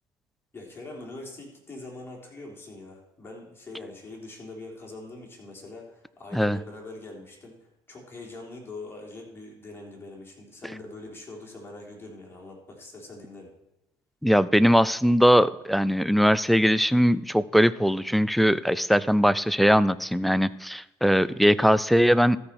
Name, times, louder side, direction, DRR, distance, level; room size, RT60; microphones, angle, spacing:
voice 1, 0.5-7.6 7.9-13.5, left 2 dB, 20° left, -1 dB, 3.7 m, -43 dB
voice 2, 14.2-22.4, equal, ahead, 16 dB, 0.4 m, -20 dB
14.0 x 4.9 x 5.8 m, 0.96 s
supercardioid pair, 80°, 11 cm